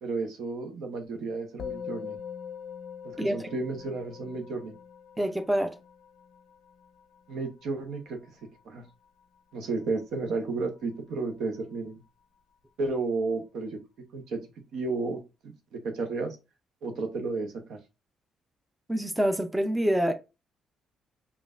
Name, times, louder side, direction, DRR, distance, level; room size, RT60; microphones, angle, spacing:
voice 1, 0.0-2.2 3.0-4.7 7.3-8.4 8.6-8.8 9.5-12.0 12.8-13.8 14.1-14.4 14.7-16.4 16.8-17.8, right 3 dB, 75° right, 0.9 m, -32 dB
Musical instrument, 1.6-11.1, left 7 dB, 75° left, 0.4 m, -44 dB
voice 2, 5.2-5.8 18.9-20.1, equal, 10° right, 0.5 m, -26 dB
5.2 x 2.4 x 2.5 m
cardioid pair, 90°, 0 cm